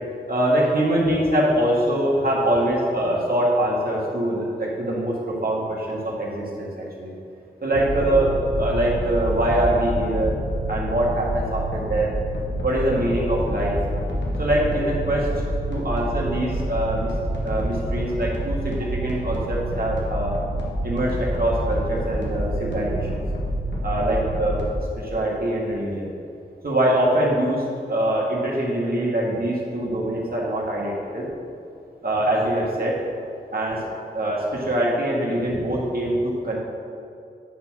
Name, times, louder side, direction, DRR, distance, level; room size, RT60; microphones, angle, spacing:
voice 1, 0.3-7.1 7.6-10.4 10.7-12.1 12.6-13.8 14.4-15.3 15.7-17.1 17.4-20.4 20.8-23.2 23.8-24.6 25.0-26.1 26.6-31.3 32.0-33.0 33.5-33.8 34.1-36.6, right 1 dB, 55° right, -4 dB, 1.9 m, -23 dB
sound 1, 7.7-24.7, right 1 dB, 85° left, 1.5 m, -28 dB
9.2 x 4.3 x 6.0 m, 2.5 s
cardioid pair, 40°, 18 cm